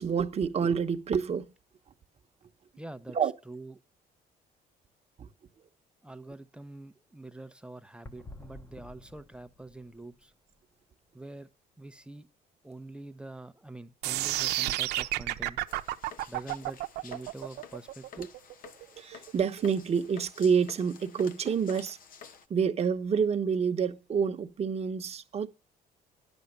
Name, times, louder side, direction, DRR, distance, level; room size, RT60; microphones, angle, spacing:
voice 1, 0.0-1.5 3.1-3.3 5.2-5.3 18.2-18.3 19.0-22.0 22.5-25.5, right 6 dB, 40° right, 1.1 m, -28 dB
voice 2, 2.8-3.8 6.0-10.3 11.1-11.5 11.8-12.3 12.6-15.6 16.3-18.3, right 2 dB, 5° right, 0.7 m, -45 dB
sound 1, 8.0-11.1 11.3-11.5 12.0-12.1 16.7-16.8, left 1 dB, 15° left, 1.2 m, -51 dB
sound 2, 14.0-20.1, right 16 dB, 85° right, 0.8 m, -31 dB
sound 3, 15.7-22.5, left 7 dB, 55° left, 1.1 m, -51 dB
10.5 x 7.1 x 6.6 m
cardioid pair, 110°, 17 cm